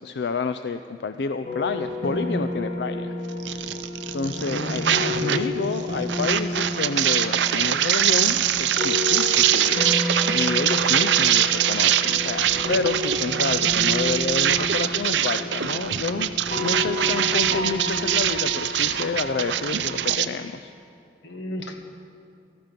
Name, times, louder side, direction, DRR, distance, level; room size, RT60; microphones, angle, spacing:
voice 1, 0.0-3.1 3.5-3.6 4.1-16.3 16.6-20.7, left 4 dB, 65° left, 10 dB, 0.4 m, -29 dB
sound 1, 1.4-20.1, left 2 dB, 45° left, 2.2 m, -31 dB
sound 2, 3.4-5.5 5.7-20.3, right 10 dB, 90° right, 0.6 m, -23 dB
voice 2, 4.4-5.4 16.8-17.2 21.2-21.8, equal, 90° left, 4 dB, 1.6 m, -33 dB
17.5 x 14.5 x 5.2 m, 2.5 s
head